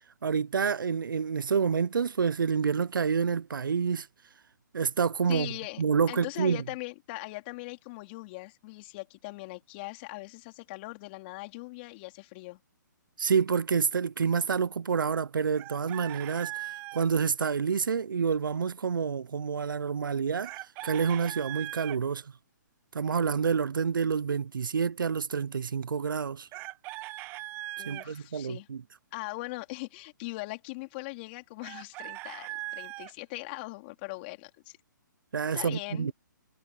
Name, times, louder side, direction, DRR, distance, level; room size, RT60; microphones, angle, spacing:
voice 1, 0.2-4.1 4.7-5.5 5.8-6.6 13.2-20.5 20.8-22.3 22.9-26.5 27.8-28.8 35.3-36.1, right 6 dB, 85° right, 0.6 m, -28 dB
voice 2, 5.3-5.8 6.1-12.6 27.8-28.7 29.1-34.8 35.5-36.1, left 24 dB, 30° left, 3.8 m, -40 dB
Chicken rooster, 15.6-17.1 20.4-22.0 26.5-28.1 31.6-33.1, right 19 dB, 20° right, 0.6 m, -40 dB
hypercardioid pair, 150°, 11 cm